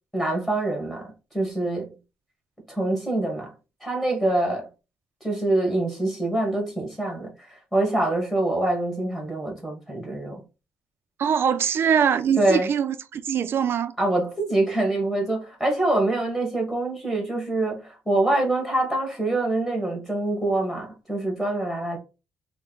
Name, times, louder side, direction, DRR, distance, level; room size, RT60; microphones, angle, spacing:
voice 1, 0.1-1.9 2.7-3.5 3.8-4.7 5.2-10.4 12.4-12.7 14.0-22.0, right 2 dB, 5° left, 1.6 m, -25 dB
voice 2, 11.2-13.9, right 8 dB, 55° right, 0.5 m, -23 dB
4.3 x 2.2 x 3.8 m
cardioid pair, 120°, 5 cm